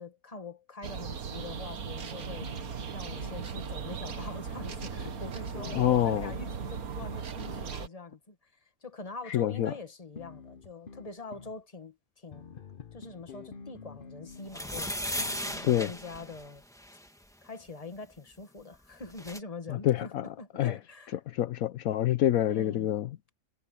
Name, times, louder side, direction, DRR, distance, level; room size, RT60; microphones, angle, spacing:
voice 1, 0.0-2.5 2.9-12.5 12.9-14.9 15.4-16.6 17.4-21.2 22.5-22.9, left 3 dB, 25° left, 1.7 m, -44 dB
sound 1, 0.8-7.9, right 6 dB, 85° right, 1.8 m, -38 dB
sound 2, 2.4-3.8 4.6-7.8 10.2-11.6 12.3-15.5, left 5 dB, 45° left, 0.9 m, -48 dB
voice 2, 5.7-6.3 9.3-9.7 15.6-15.9 19.7-20.2 20.6-20.8 21.3-23.1, left 12 dB, 75° left, 1.1 m, -26 dB
sound 3, 14.5-17.1 18.7-18.8 19.0-19.4, equal, ahead, 1.2 m, -36 dB
omnidirectional pair, 1.5 m